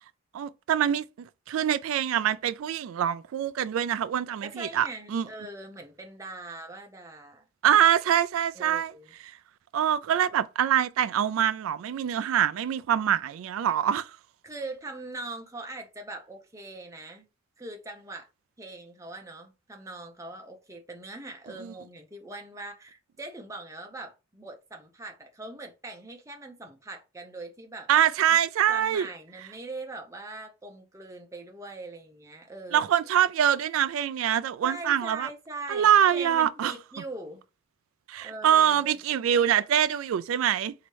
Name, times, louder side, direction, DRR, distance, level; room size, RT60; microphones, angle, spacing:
voice 1, 0.3-5.2 7.6-8.9 9.7-14.1 21.6-21.7 27.9-29.1 32.7-35.3 35.7-36.7 38.1-40.7, right 9 dB, 85° right, 0.3 m, -24 dB
voice 2, 4.4-7.4 7.7-7.8 8.5-9.1 14.4-17.3 17.6-18.3 18.6-27.9 28.3-28.4 28.7-32.9 34.6-37.4 38.2-39.0, right 2 dB, 15° right, 0.8 m, -41 dB
3.1 x 2.8 x 4.5 m
head